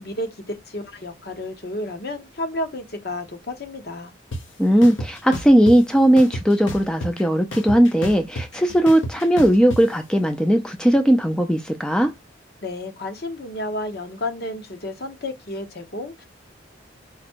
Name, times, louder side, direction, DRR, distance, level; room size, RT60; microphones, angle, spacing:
voice 1, 0.0-4.1 12.6-16.3, left 1 dB, 50° left, 1.0 m, -31 dB
sound 1, 4.3-4.4 4.8-5.8 6.2-7.2 7.5-9.8, equal, 75° left, 1.0 m, -30 dB
voice 2, 4.6-12.1, right 1 dB, 5° left, 0.4 m, -18 dB
5.0 x 2.2 x 4.4 m
head